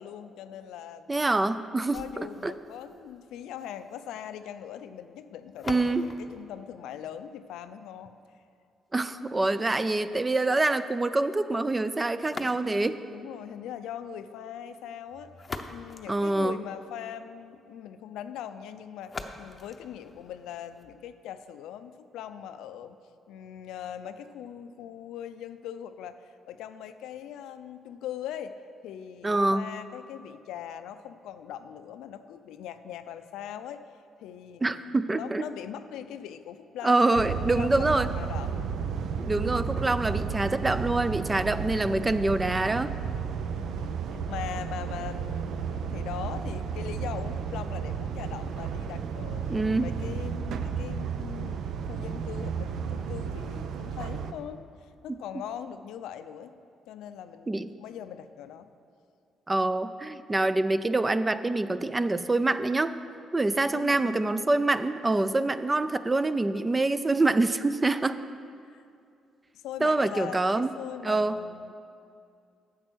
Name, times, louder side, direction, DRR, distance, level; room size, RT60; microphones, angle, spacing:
voice 1, 0.0-1.3 1.9-8.1 13.1-15.3 15.7-23.0 23.3-28.5 28.8-33.9 34.2-38.7 43.5-51.6 51.9-56.6 56.9-58.7 63.7-64.3 68.7-68.8 69.5-71.7, left 9 dB, 90° left, 10 dB, 0.5 m, -41 dB
voice 2, 1.1-2.0 2.4-2.5 5.7-6.1 8.9-13.0 16.1-16.6 29.2-29.7 34.6-35.4 36.8-38.1 39.2-42.9 49.5-49.9 55.1-55.2 57.5-57.7 59.5-62.9 63.3-68.2 69.8-70.7 71.0-71.4, right 2 dB, 20° right, 12 dB, 0.4 m, -25 dB
sound 1, 1.8-7.8 12.2-13.1 15.1-17.0 19.0-21.0, left 3 dB, 30° left, 0.7 m, -44 dB
sound 2, 37.1-54.3, right 6 dB, 75° right, 0.5 m, -33 dB
9.1 x 7.5 x 6.2 m, 2.5 s
cardioid pair, 90°, 0 cm